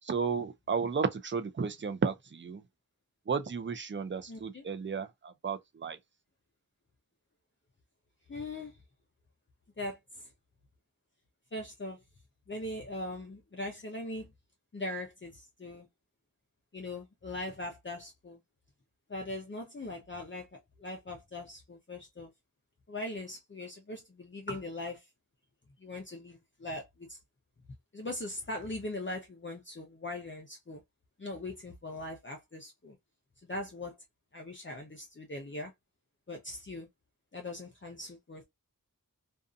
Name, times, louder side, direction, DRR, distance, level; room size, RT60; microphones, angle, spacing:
voice 1, 0.0-2.6 3.3-6.0, right 5 dB, 35° right, 0.5 m, -33 dB
voice 2, 4.3-4.6 8.3-8.8 9.8-10.3 11.5-12.0 12.5-14.3 14.7-15.9 16.7-18.4 19.1-22.3 22.9-25.1 25.8-27.2 27.9-30.8 31.2-33.0 33.4-34.0 34.3-35.7 36.3-36.9 37.3-38.4, left 2 dB, 35° left, 0.6 m, -40 dB
2.6 x 2.4 x 2.3 m
wide cardioid pair, 45°, 33 cm